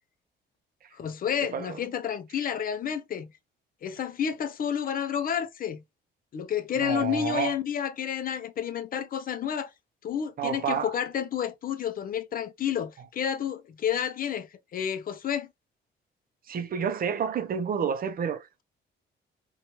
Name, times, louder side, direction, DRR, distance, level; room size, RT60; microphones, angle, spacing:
voice 1, 0.9-3.3 3.8-5.8 6.3-9.7 10.0-15.5, left 8 dB, 45° left, 0.4 m, -30 dB
voice 2, 6.8-7.5 10.4-10.9 16.5-18.6, right 7 dB, 45° right, 0.5 m, -29 dB
2.8 x 2.3 x 2.8 m
cardioid pair, 90°, 20 cm